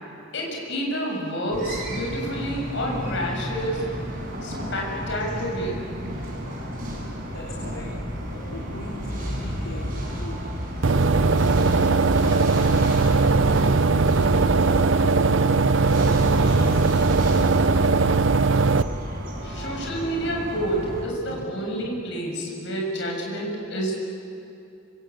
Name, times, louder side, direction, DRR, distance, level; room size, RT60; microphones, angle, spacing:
voice 1, 0.3-3.9 4.4-6.2 19.4-23.9, equal, 65° left, 0 dB, 7.2 m, -29 dB
sound 1, 1.5-21.0, equal, 45° right, 7.5 m, -31 dB
voice 2, 7.2-7.9 8.3-10.4 10.9-12.4 12.7-13.7 14.1-16.8, left 1 dB, 80° left, -3 dB, 3.9 m, -39 dB
sound 2, 10.8-18.8, right 4 dB, 70° right, 0.7 m, -19 dB
25.5 x 25.5 x 8.4 m, 2.7 s
head